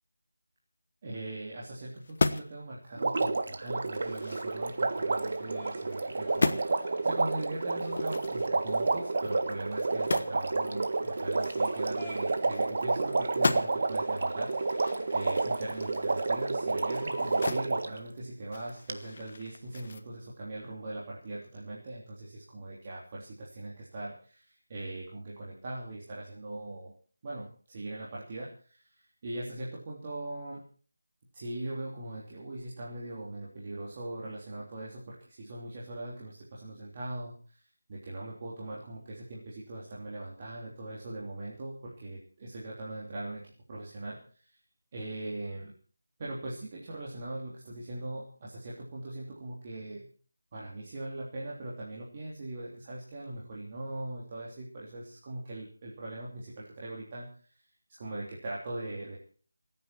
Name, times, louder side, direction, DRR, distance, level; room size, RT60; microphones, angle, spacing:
voice 1, 1.0-26.9 27.2-30.6 31.3-44.5 44.9-45.7 46.2-50.1 50.5-57.5 58.0-59.2, right 2 dB, 25° right, -5 dB, 3.3 m, -40 dB
sound 1, 2.0-2.6 3.1-3.2 3.7-5.4 5.8-6.0 6.3-6.7 7.8-10.4 10.7-10.8 11.1-12.9 13.2-13.9 14.4-17.7 18.0-20.0, left 3 dB, 40° left, 1.2 m, -35 dB
Water, 3.0-18.0 18.9-19.0, right 3 dB, 45° right, 1.5 m, -30 dB
sound 2, 3.9-17.5, right 1 dB, 10° right, 3.8 m, -50 dB
28.0 x 9.7 x 4.5 m, 0.42 s
figure-of-eight pair, 175°, 0 cm